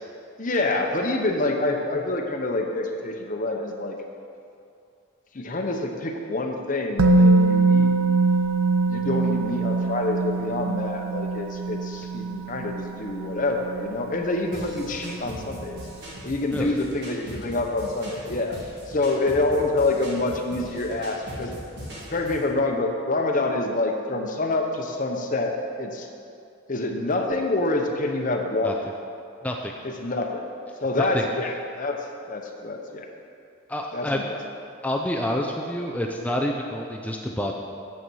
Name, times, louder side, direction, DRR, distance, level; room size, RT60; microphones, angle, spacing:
voice 1, 0.4-4.0 5.3-7.9 8.9-15.8 16.2-18.6 18.9-21.5 22.1-26.1 26.7-28.7 29.8-30.4 30.8-32.0 32.3-33.1 33.9-34.4, left 2 dB, 40° left, 2 dB, 0.8 m, -26 dB
Musical instrument, 7.0-14.9 15.2-15.3, right 3 dB, 85° right, 0.7 m, -23 dB
sound 1, 14.5-22.5, equal, 50° right, 1.8 m, -40 dB
voice 2, 33.7-34.3 34.8-37.6, left 1 dB, 5° left, 1 dB, 0.4 m, -28 dB
7.8 x 6.8 x 6.2 m, 2.5 s
head